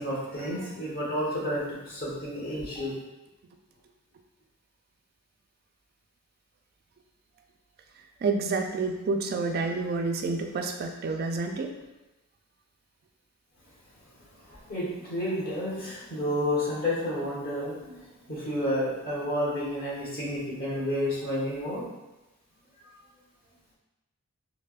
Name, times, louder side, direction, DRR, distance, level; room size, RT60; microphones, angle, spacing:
voice 1, 0.0-3.0 14.5-18.0 18.3-21.8, left 1 dB, 45° left, -7 dB, 1.2 m, -30 dB
voice 2, 8.2-11.7, right 3 dB, 45° right, 4 dB, 0.3 m, -29 dB
4.4 x 2.0 x 2.4 m, 1.0 s
head